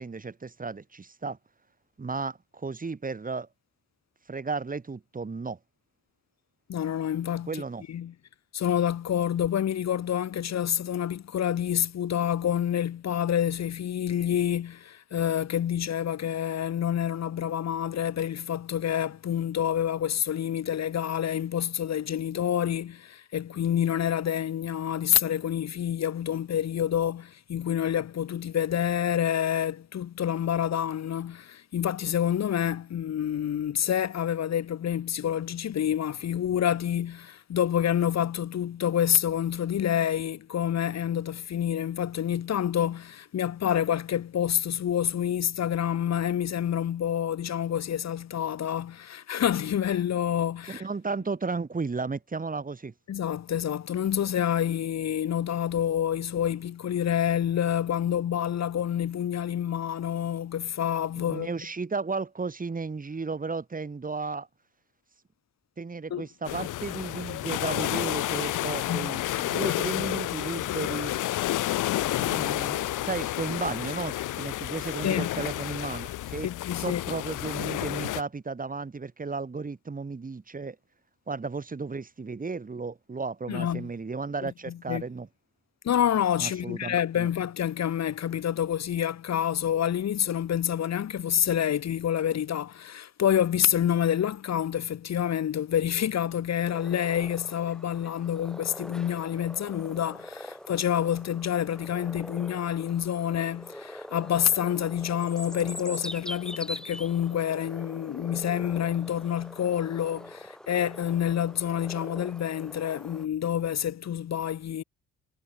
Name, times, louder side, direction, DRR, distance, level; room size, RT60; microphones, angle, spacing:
voice 1, 0.0-1.4 2.0-3.5 4.3-5.6 7.5-7.8 50.7-52.9 61.2-64.5 65.8-71.1 72.2-76.5 76.8-80.8 81.3-85.3 86.4-87.3, right 4 dB, 25° right, 4.3 m, -34 dB
voice 2, 6.7-7.6 7.9-8.1 8.5-50.8 53.1-61.5 66.1-66.3 68.8-69.1 75.0-75.3 76.4-77.0 83.5-83.9 84.4-85.0 85.8-114.8, left 10 dB, 60° left, 2.9 m, -28 dB
sound 1, 66.5-78.2, left 15 dB, 85° left, 3.7 m, -30 dB
sound 2, 96.7-113.2, equal, ahead, 5.3 m, -43 dB
cardioid pair, 90°, 30 cm